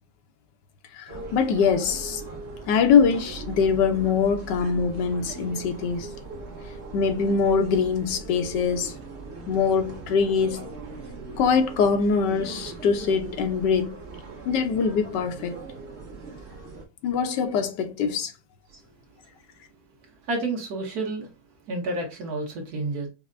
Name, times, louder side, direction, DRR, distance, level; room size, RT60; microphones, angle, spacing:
voice 1, 0.9-2.2 2.7-6.1 6.9-8.9 9.5-10.6 11.3-13.9 14.5-15.6 17.0-18.3, left 6 dB, 85° left, 1.2 m, -23 dB
sound 1, 1.1-16.8, right 4 dB, 45° right, 1.1 m, -40 dB
voice 2, 20.0-21.3 21.7-23.1, right 2 dB, 60° right, 1.5 m, -30 dB
5.4 x 2.1 x 2.4 m
omnidirectional pair, 1.9 m